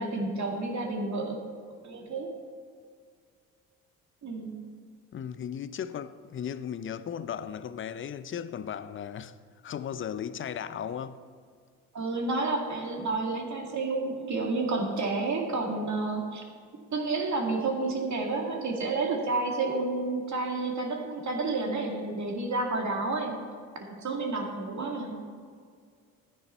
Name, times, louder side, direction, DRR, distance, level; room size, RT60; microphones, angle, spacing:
voice 1, 0.0-1.4 1.8-2.3 4.2-4.6 11.9-16.4 16.9-23.4 24.0-25.2, right 3 dB, 40° right, 2.3 m, -30 dB
voice 2, 5.1-9.3 9.6-11.2, left 8 dB, 30° left, 0.6 m, -36 dB
13.0 x 9.4 x 4.3 m
hypercardioid pair, 50°, 42 cm